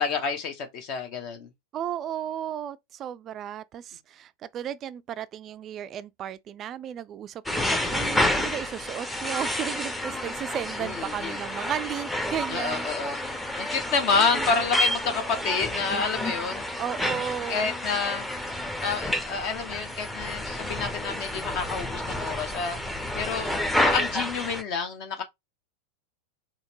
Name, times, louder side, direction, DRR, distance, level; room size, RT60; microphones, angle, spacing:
voice 1, 0.0-1.5 10.8-11.4 12.5-13.2 13.6-16.6 17.5-18.3 18.8-22.8 23.1-25.2, left 5 dB, 40° left, 0.9 m, -29 dB
voice 2, 1.7-12.9 14.3-14.7 16.8-17.7, right 10 dB, 30° right, 0.3 m, -34 dB
sound 1, 7.5-24.6, left 1 dB, 5° left, 0.7 m, -29 dB
4.2 x 2.9 x 2.9 m
figure-of-eight pair, 90°, 0 cm